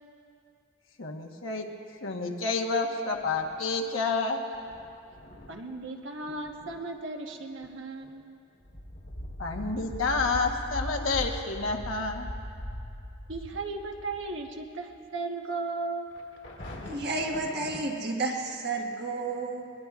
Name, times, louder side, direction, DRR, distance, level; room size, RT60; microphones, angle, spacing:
voice 1, 1.0-1.7 2.0-4.4 9.4-12.3, left 3 dB, 80° left, 3 dB, 1.2 m, -29 dB
sound 1, 3.1-3.8 4.5-5.8 6.2-6.8 7.4-7.7 8.0-8.2 8.6-14.6 14.9-15.0 16.1-17.8, equal, 60° left, 1.6 m, -41 dB
voice 2, 5.5-8.3 13.3-16.1, right 3 dB, 70° right, 2 dB, 1.2 m, -36 dB
voice 3, 16.8-19.7, right 3 dB, 55° right, 1 dB, 1.6 m, -31 dB
22.0 x 21.0 x 2.5 m, 2.6 s
head